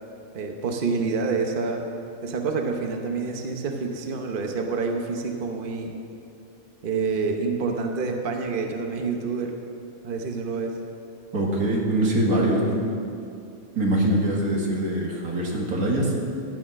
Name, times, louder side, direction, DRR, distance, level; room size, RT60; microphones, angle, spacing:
voice 1, 0.3-1.9 2.2-5.9 6.8-9.5 10.0-10.7, right 4 dB, 40° right, 3 dB, 1.1 m, -27 dB
voice 2, 11.3-12.8 13.7-16.1, right 1 dB, 85° right, -1 dB, 2.3 m, -23 dB
13.0 x 8.5 x 6.4 m, 2.5 s
omnidirectional pair, 1.5 m